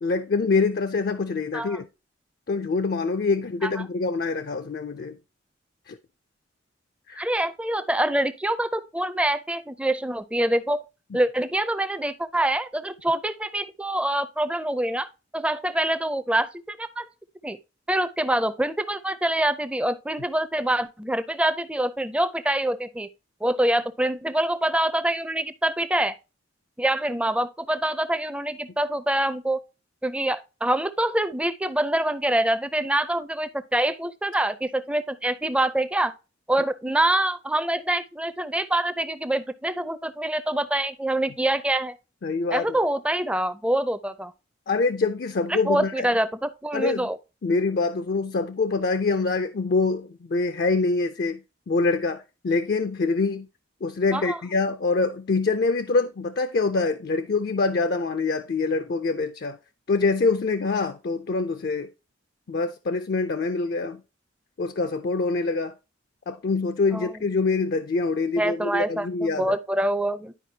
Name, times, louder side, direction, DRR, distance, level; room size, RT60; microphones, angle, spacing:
voice 1, 0.0-1.9 2.5-5.2 5.9-6.0 7.1-7.3 42.2-42.8 44.7-46.1 46.7-47.1 47.4-51.4 51.7-53.5 53.8-59.6 59.9-61.9 62.5-64.0 64.6-65.7 66.3-69.6, left 3 dB, 50° left, 0.4 m, -25 dB
voice 2, 7.2-10.8 11.1-15.1 15.3-17.1 17.4-17.6 17.9-23.1 23.4-26.1 26.8-29.6 30.0-36.1 36.5-42.0 42.5-44.3 45.5-47.2 54.1-54.4 66.9-67.2 68.4-70.3, right 1 dB, 5° right, 0.4 m, -25 dB
11.0 x 4.9 x 2.8 m
head